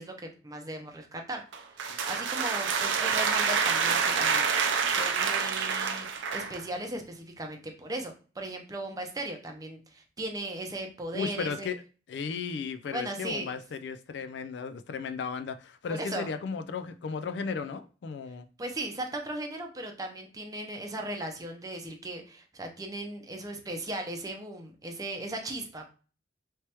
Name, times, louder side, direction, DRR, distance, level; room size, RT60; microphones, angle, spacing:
voice 1, 0.0-11.7 12.9-13.5 15.9-16.3 18.6-25.8, right 1 dB, 20° right, 0.6 m, -37 dB
sound 1, 1.5-6.6, right 6 dB, 85° right, 0.5 m, -27 dB
voice 2, 11.1-11.8 12.1-18.5, left 5 dB, 65° left, 0.3 m, -35 dB
3.4 x 3.0 x 2.9 m
head